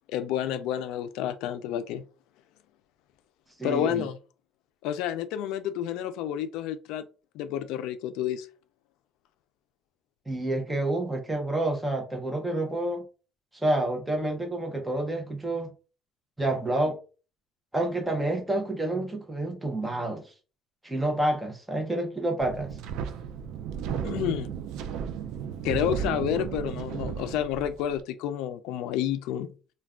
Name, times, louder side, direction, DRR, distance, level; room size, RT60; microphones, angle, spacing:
voice 1, 0.1-2.0 3.6-4.2 4.8-7.0 7.3-8.5 24.0-24.5 25.6-29.5, left 10 dB, 80° left, 0.3 m, -30 dB
voice 2, 3.6-4.0 10.3-13.0 13.5-15.7 16.4-17.0 17.7-20.2 20.8-22.7, right 1 dB, 5° right, 0.6 m, -28 dB
Wind, 22.4-28.0, right 8 dB, 70° right, 0.3 m, -34 dB
2.3 x 2.2 x 3.5 m
cardioid pair, 155°, 0 cm